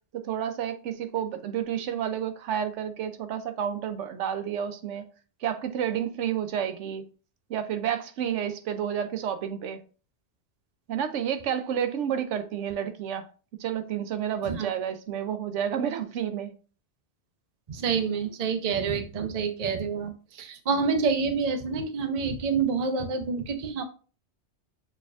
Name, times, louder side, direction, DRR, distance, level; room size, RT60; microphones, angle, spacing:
voice 1, 0.1-5.0 5.4-7.0 7.5-9.8 10.9-13.3 13.6-16.5, right 9 dB, 85° right, 1.0 m, -30 dB
voice 2, 17.7-23.8, right 5 dB, 45° right, 0.6 m, -28 dB
6.3 x 3.3 x 2.4 m
omnidirectional pair, 1.2 m